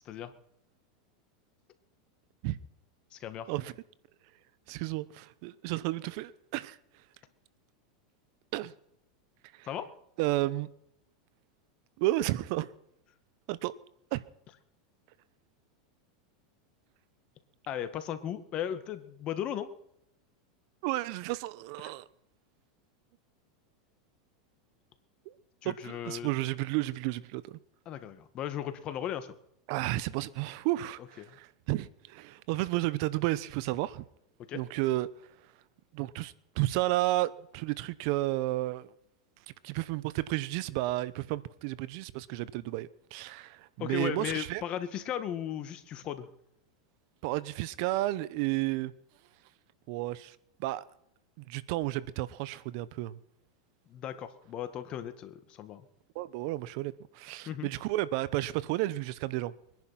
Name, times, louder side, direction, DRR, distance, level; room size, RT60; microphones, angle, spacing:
voice 1, 3.1-3.5 9.7-9.9 17.7-19.7 25.6-26.3 27.9-29.4 31.3-31.4 34.5-34.6 43.8-46.3 53.9-55.8 57.5-57.7, left 10 dB, 40° left, 1.9 m, -36 dB
voice 2, 4.7-6.8 8.5-8.7 9.5-9.7 10.2-10.7 12.0-12.7 13.5-13.7 14.1-14.2 20.8-22.1 25.3-25.4 25.6-27.6 29.7-34.0 34.5-35.1 35.9-38.9 39.6-44.6 47.2-48.9 49.9-50.8 51.5-53.2 56.1-59.5, right 17 dB, 60° right, 0.9 m, -32 dB
23.0 x 10.5 x 5.9 m
hypercardioid pair, 110°, 3 cm